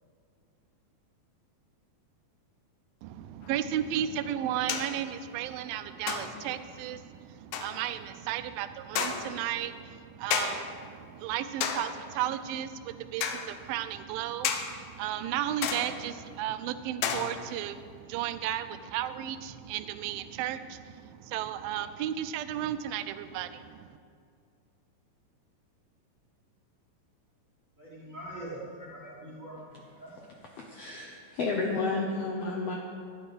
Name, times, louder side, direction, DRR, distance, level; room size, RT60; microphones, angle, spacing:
voice 1, 3.0-24.0, right 11 dB, 90° right, 11 dB, 2.4 m, -34 dB
sound 1, 3.4-3.5 4.7-5.0 6.1-6.6 7.5-7.8 9.0-9.4 10.3-10.8 11.6-12.1 13.2-13.5 14.4-14.8 15.6-16.1 17.0-17.6, left 7 dB, 85° left, 2.6 m, -32 dB
voice 2, 27.8-30.2, right 1 dB, 35° right, -6 dB, 1.4 m, -43 dB
voice 3, 30.6-32.8, left 3 dB, 70° left, 0 dB, 1.5 m, -31 dB
13.5 x 10.0 x 5.1 m, 2.3 s
omnidirectional pair, 4.1 m